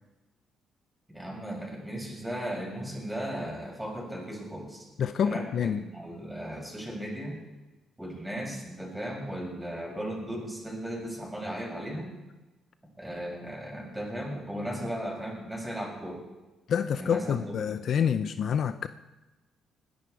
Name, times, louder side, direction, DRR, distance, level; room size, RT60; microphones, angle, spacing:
voice 1, 1.1-4.9 5.2-7.4 8.0-12.1 13.0-16.2 16.9-18.0, equal, 5° right, -2 dB, 7.0 m, -36 dB
voice 2, 5.0-5.8 16.7-18.9, left 7 dB, 60° left, 12 dB, 0.5 m, -27 dB
20.5 x 11.0 x 4.9 m, 1.1 s
cardioid pair, 90°, 0 cm